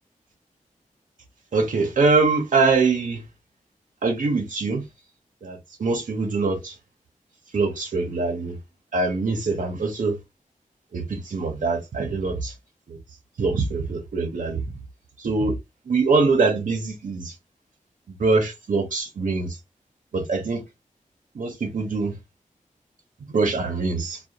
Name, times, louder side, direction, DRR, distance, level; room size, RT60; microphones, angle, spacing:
voice 1, 1.5-3.2 4.0-4.8 5.4-6.8 7.5-8.6 8.9-10.2 10.9-12.5 12.9-13.0 13.4-14.6 15.2-15.6 15.9-17.3 18.2-19.6 20.1-20.6 21.3-22.1 23.3-24.2, right 4 dB, 75° right, 0.6 m, -23 dB
2.4 x 2.1 x 2.8 m
wide cardioid pair, 90°, 14 cm